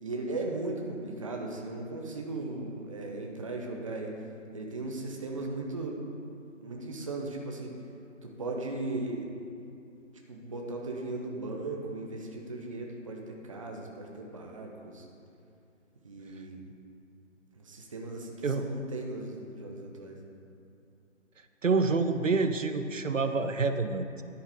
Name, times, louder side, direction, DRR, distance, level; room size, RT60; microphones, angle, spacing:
voice 1, 0.0-4.1 4.5-6.0 6.6-7.7 8.2-9.3 10.3-15.0 16.0-16.6 17.6-20.2, right 2 dB, 25° right, 0 dB, 0.8 m, -37 dB
voice 2, 21.6-24.2, right 4 dB, 75° right, 8 dB, 0.7 m, -27 dB
10.5 x 9.2 x 3.5 m, 2.6 s
figure-of-eight pair, 150°, 39 cm